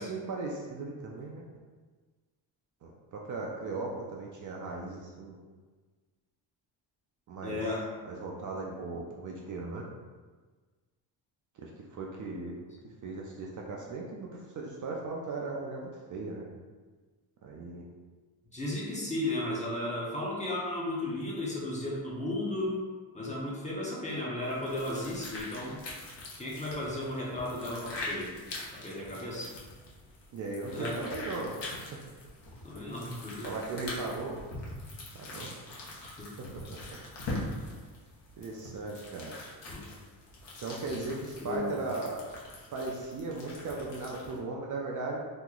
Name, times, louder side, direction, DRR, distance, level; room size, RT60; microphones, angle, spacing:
voice 1, 0.0-1.4 2.8-5.4 7.3-7.6 8.1-9.9 11.6-12.6 13.0-16.5 17.4-17.8 30.3-31.6 33.4-34.4 35.2-35.5 36.7-37.0 38.4-39.3 40.6-42.3 42.7-45.2, right 3 dB, 45° right, -2 dB, 0.4 m, -37 dB
voice 2, 7.4-7.9 18.5-22.8 23.1-25.8 26.4-28.3 28.7-29.5 30.7-31.0 32.6-33.5 36.0-36.3 39.7-39.9 41.4-41.8, left 1 dB, 15° left, -5 dB, 0.6 m, -34 dB
sound 1, 24.4-44.4, left 2 dB, 65° left, 0.9 m, -43 dB
3.0 x 2.1 x 3.7 m, 1.4 s
cardioid pair, 130°, 46 cm